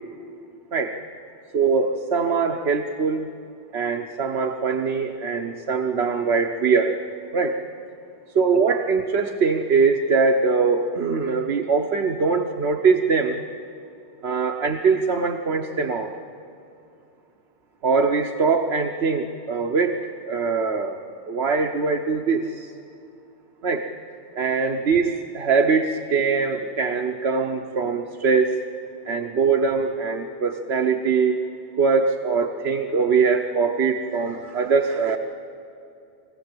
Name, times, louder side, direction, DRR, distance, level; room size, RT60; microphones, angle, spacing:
voice 1, 1.5-3.3 3.7-7.0 7.3-7.6 8.3-13.4 14.2-16.1 17.8-21.0 21.3-22.7 23.6-23.9 24.4-28.6 29.1-31.4 31.8-35.2, right 5 dB, 80° right, 2 dB, 1.2 m, -22 dB
25.0 x 17.0 x 7.6 m, 2.6 s
omnidirectional pair, 1.1 m